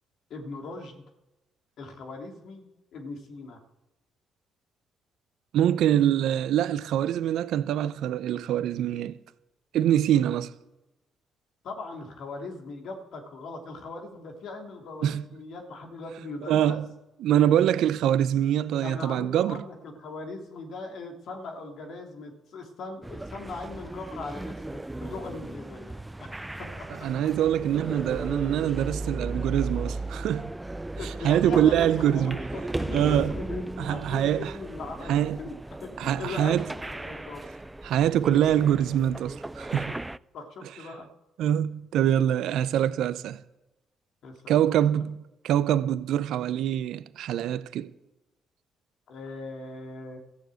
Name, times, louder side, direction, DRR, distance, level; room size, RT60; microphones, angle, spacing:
voice 1, 0.3-1.0 1.8-2.7 2.9-3.6 11.6-16.8 18.8-25.9 26.2-27.1 31.0-35.5 35.8-36.6 36.8-37.4 39.9-40.0 40.3-41.1 44.2-45.0 49.1-50.2, left 3 dB, 70° left, 3.1 m, -40 dB
voice 2, 5.5-9.2 9.7-10.5 15.0-15.2 16.5-16.9 17.2-19.6 27.0-30.5 31.2-32.4 32.9-33.3 33.8-34.5 35.1-35.4 36.0-36.7 37.8-39.9 41.4-43.4 44.5-47.9, right 10 dB, 75° right, 0.7 m, -24 dB
sound 1, 23.0-40.2, right 2 dB, 15° right, 0.5 m, -36 dB
14.0 x 7.1 x 7.8 m
supercardioid pair, 60°, 0 cm